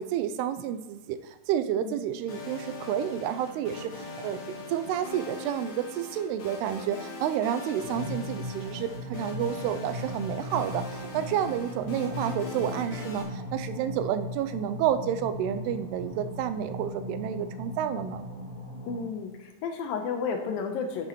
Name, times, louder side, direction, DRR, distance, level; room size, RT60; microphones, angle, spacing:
voice 1, 0.0-18.2, right 10 dB, 85° right, 10 dB, 2.6 m, -30 dB
sound 1, 2.3-13.2, left 3 dB, 60° left, 3.4 m, -41 dB
sound 2, 7.8-19.0, left 1 dB, 20° right, 3.6 m, -38 dB
voice 2, 18.9-21.1, left 5 dB, 75° left, 5 dB, 2.4 m, -32 dB
10.5 x 9.1 x 3.1 m, 1.2 s
omnidirectional pair, 4.6 m